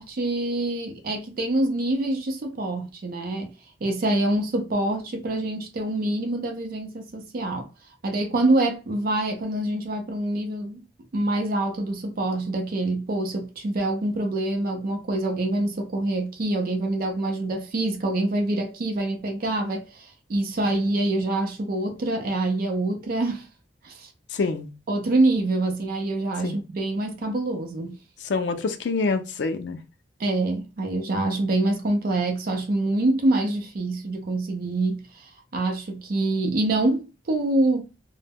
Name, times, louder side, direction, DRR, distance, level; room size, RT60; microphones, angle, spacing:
voice 1, 0.0-3.5 3.8-7.7 8.0-10.8 11.1-23.5 23.8-24.1 24.9-28.0 30.2-38.0, right 2 dB, 55° right, 0.4 m, -25 dB
voice 2, 24.3-24.7 26.4-26.6 28.2-29.8, left 4 dB, 70° left, 0.4 m, -26 dB
2.1 x 2.0 x 3.4 m
head